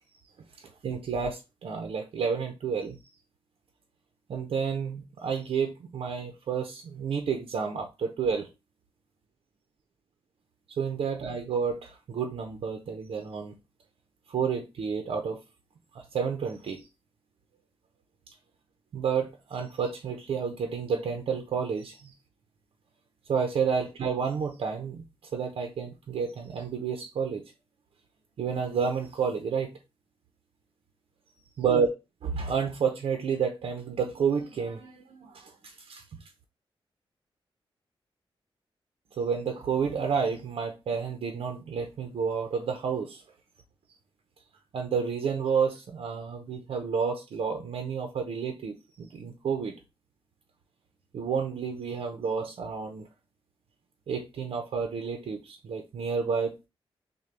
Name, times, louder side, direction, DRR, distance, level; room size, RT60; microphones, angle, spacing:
voice 1, 0.8-3.0 4.3-8.5 10.8-13.5 14.3-15.4 15.9-16.8 18.9-22.1 23.3-25.0 25.3-27.4 28.4-29.7 31.6-31.9 32.2-36.0 39.2-43.2 44.7-49.8 51.1-53.1 54.1-56.7, right 6 dB, 75° right, 0.6 m, -30 dB
6.6 x 2.2 x 3.3 m
wide cardioid pair, 180°, 10 cm